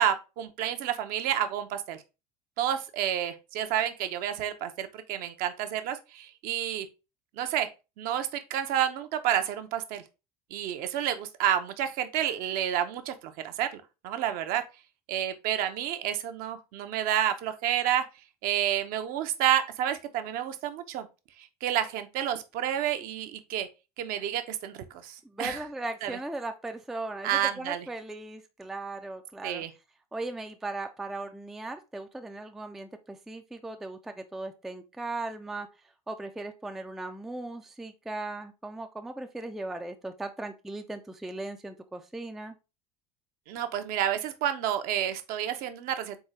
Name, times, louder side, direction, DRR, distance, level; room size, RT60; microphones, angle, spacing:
voice 1, 0.0-2.0 2.6-6.9 7.4-7.7 8.0-10.0 10.5-14.6 15.1-18.0 18.4-21.1 21.6-23.7 24.0-24.8 25.0-25.6 26.0-26.1 27.2-27.8 29.4-29.7 43.5-46.2, right 10 dB, 50° right, 0.6 m, -29 dB
voice 2, 25.2-29.6 30.1-35.7 36.1-42.5, right 2 dB, ahead, 0.3 m, -38 dB
3.8 x 3.6 x 3.1 m
figure-of-eight pair, 65°, 19 cm